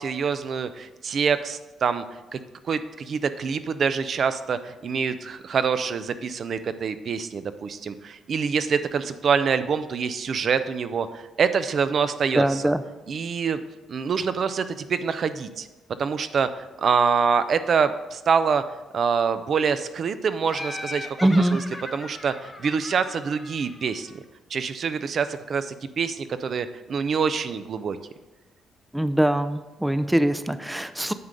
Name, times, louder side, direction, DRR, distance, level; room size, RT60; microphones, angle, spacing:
voice 1, 0.0-2.0 2.3-2.4 2.6-12.7 13.1-13.6 13.9-15.7 16.0-18.6 18.9-21.6 21.9-24.2 24.5-28.0, right 6 dB, 55° right, 11 dB, 0.5 m, -25 dB
voice 2, 12.4-12.8 21.2-21.6 28.9-31.1, right 1 dB, 5° right, 12 dB, 0.5 m, -22 dB
Laughter, 20.5-24.1, left 2 dB, 20° left, 1.0 m, -38 dB
9.4 x 3.8 x 6.6 m, 1.1 s
cardioid pair, 90°, 0 cm